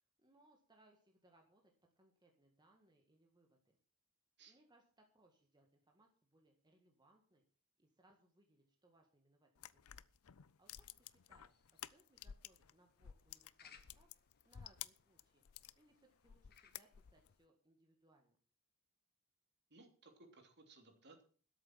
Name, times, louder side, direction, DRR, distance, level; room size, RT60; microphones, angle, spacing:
voice 1, 0.2-3.8 4.5-7.4 7.8-9.9 10.3-14.1 14.4-15.4 15.8-18.4, right 1 dB, 20° right, 1 dB, 1.8 m, -72 dB
sound 1, 9.6-12.7 13.0-15.8 16.2-17.3, left 11 dB, 75° left, 0.6 m, -53 dB
sound 2, 10.7-17.4, left 7 dB, 45° left, 1.6 m, -69 dB
voice 2, 19.7-21.2, right 3 dB, 50° right, 5 dB, 3.1 m, -62 dB
13.0 x 7.8 x 7.4 m, 0.42 s
head